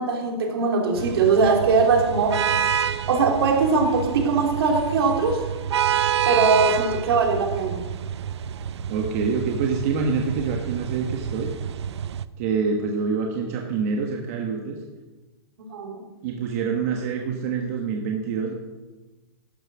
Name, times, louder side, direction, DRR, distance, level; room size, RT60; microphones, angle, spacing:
voice 1, 0.0-2.4 3.1-5.4 6.2-7.8 15.7-16.0, right 4 dB, 65° right, 3 dB, 3.0 m, -21 dB
sound 1, 0.9-12.2, right 9 dB, 80° right, 0.6 m, -28 dB
voice 2, 8.9-11.5 12.4-14.8 16.2-18.5, right 5 dB, 35° right, 2 dB, 1.2 m, -26 dB
12.0 x 9.0 x 6.2 m, 1.2 s
hypercardioid pair, 170°, 14 cm